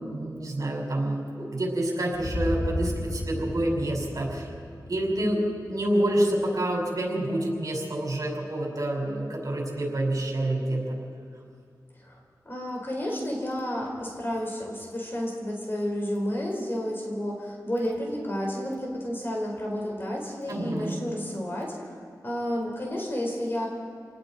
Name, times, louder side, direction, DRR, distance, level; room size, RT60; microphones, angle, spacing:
voice 1, 0.0-4.5 4.9-5.4 5.7-11.0 20.5-20.9, right 1 dB, 55° right, -1 dB, 6.0 m, -28 dB
sound 1, 2.1-6.2, left 1 dB, 50° left, 2.1 m, -33 dB
voice 2, 12.5-21.7 22.2-23.7, equal, 30° left, -1 dB, 5.3 m, -31 dB
29.0 x 19.5 x 4.7 m, 2.3 s
wide cardioid pair, 100°, 7 cm